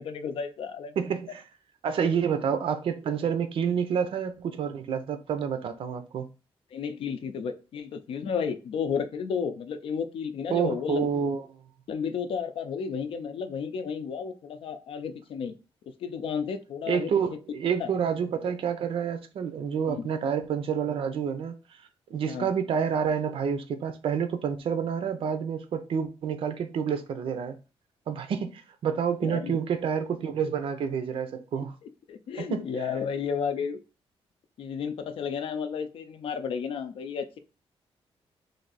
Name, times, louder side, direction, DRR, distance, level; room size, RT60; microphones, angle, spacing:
voice 1, 0.0-1.0 6.7-11.1 11.9-15.5 16.0-17.1 17.8-17.9 19.9-20.1 22.3-22.5 29.2-29.6 32.1-33.8 34.6-37.4, left 6 dB, 65° left, 0.5 m, -32 dB
voice 2, 1.0-1.4 1.8-6.3 10.5-11.5 16.9-21.5 22.1-27.6 28.1-31.8 32.4-32.7, right 7 dB, 65° right, 0.5 m, -28 dB
3.3 x 2.7 x 4.0 m
wide cardioid pair, 160°, 10 cm